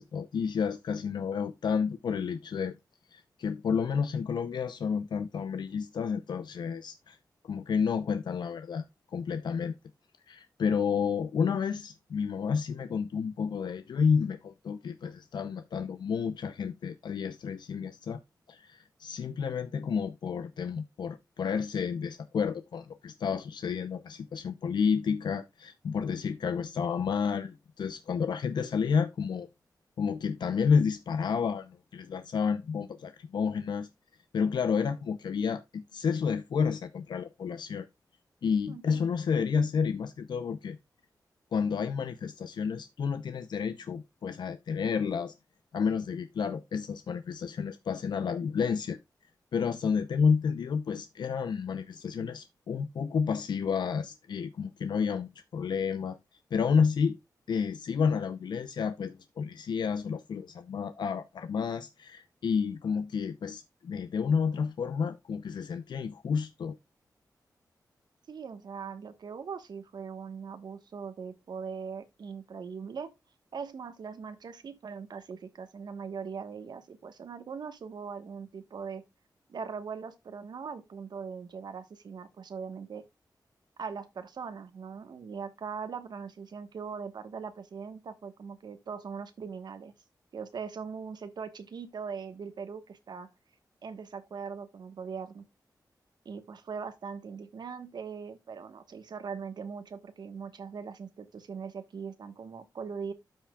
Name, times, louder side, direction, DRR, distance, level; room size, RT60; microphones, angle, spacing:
voice 1, 0.0-2.7 3.1-7.2 7.4-8.8 9.1-9.7 10.3-18.2 18.5-29.5 30.0-33.9 34.3-37.9 38.4-40.8 41.5-45.3 45.7-49.0 49.5-56.2 56.5-57.2 57.5-66.8, left 6 dB, 85° left, 0.6 m, -30 dB
voice 2, 38.7-39.0 68.3-73.1 73.5-79.0 79.5-83.0 83.8-89.9 90.3-93.3 93.8-95.5 96.2-103.1, right 6 dB, 70° right, 1.2 m, -40 dB
13.0 x 5.9 x 2.3 m
wide cardioid pair, 135°, 7 cm